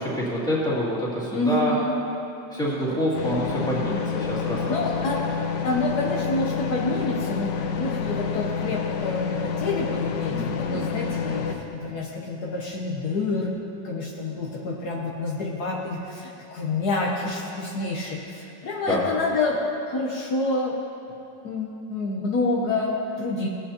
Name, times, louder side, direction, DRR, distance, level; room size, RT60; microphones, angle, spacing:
voice 1, 0.0-1.7 2.5-4.8 10.3-10.9 18.9-19.0, equal, ahead, -8 dB, 2.2 m, -27 dB
voice 2, 1.3-1.9 4.7-5.2 5.6-13.5 13.8-19.6 19.9-20.7 21.4-23.5, left 2 dB, 65° left, -2 dB, 1.4 m, -28 dB
sound 1, 3.1-11.5, left 6 dB, 85° left, 1.4 m, -28 dB
17.5 x 8.8 x 2.9 m, 2.7 s
omnidirectional pair, 1.9 m